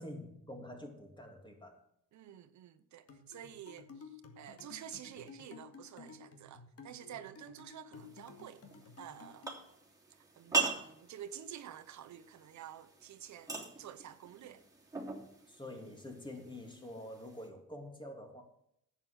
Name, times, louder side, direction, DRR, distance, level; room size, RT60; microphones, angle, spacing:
voice 1, 0.0-1.8 15.5-18.4, left 1 dB, 15° left, 3.0 m, -47 dB
voice 2, 2.1-8.6 9.0-9.5 10.4-14.6, right 10 dB, 70° right, 0.9 m, -50 dB
sound 1, 3.1-9.6, left 5 dB, 50° left, 2.2 m, -54 dB
sound 2, 8.0-17.5, right 4 dB, 10° right, 3.0 m, -42 dB
10.5 x 8.3 x 6.4 m
cardioid pair, 90°, 30 cm